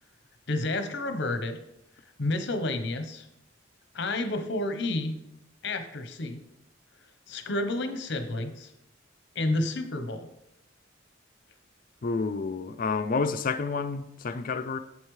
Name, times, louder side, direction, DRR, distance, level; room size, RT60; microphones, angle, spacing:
voice 1, 0.5-1.6 2.2-3.3 3.9-5.2 5.6-6.4 7.3-8.7 9.3-10.3, left 2 dB, 65° left, 0.8 m, -30 dB
voice 2, 12.0-14.8, left 4 dB, 45° left, 0.4 m, -29 dB
8.0 x 7.3 x 3.1 m
head